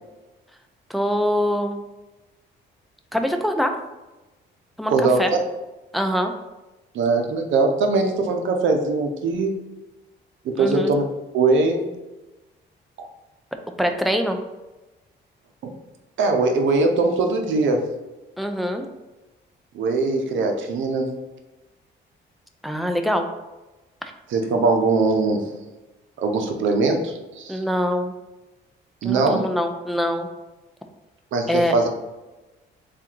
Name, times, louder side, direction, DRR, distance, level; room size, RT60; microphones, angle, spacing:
voice 1, 0.9-1.8 3.1-3.7 4.8-4.9 5.2-5.3 5.9-6.3 10.6-10.9 13.8-14.4 18.4-18.9 22.6-23.3 24.0-24.1 27.5-28.1 29.0-30.3 31.5-31.7, equal, ahead, 5 dB, 0.4 m, -23 dB
voice 2, 4.9-5.4 6.9-9.6 10.4-11.0 11.3-11.8 13.0-13.1 16.2-17.9 19.7-21.1 24.3-25.5 26.2-27.6 29.0-29.5 31.3-31.9, right 3 dB, 75° right, 4 dB, 0.7 m, -21 dB
3.5 x 2.5 x 4.4 m, 1.1 s
cardioid pair, 90°, 20 cm